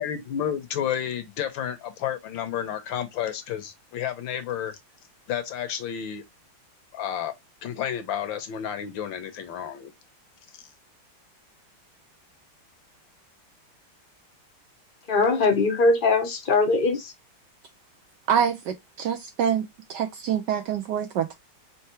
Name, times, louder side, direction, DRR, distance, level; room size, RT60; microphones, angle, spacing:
voice 1, 0.0-4.8 5.3-6.2 6.9-7.3 7.6-9.9, left 9 dB, 70° left, 1.5 m, -31 dB
voice 2, 15.1-17.1, left 3 dB, 45° left, 0.6 m, -21 dB
voice 3, 18.3-19.6 19.9-21.4, right 8 dB, 75° right, 1.0 m, -26 dB
4.5 x 3.3 x 3.0 m
omnidirectional pair, 2.3 m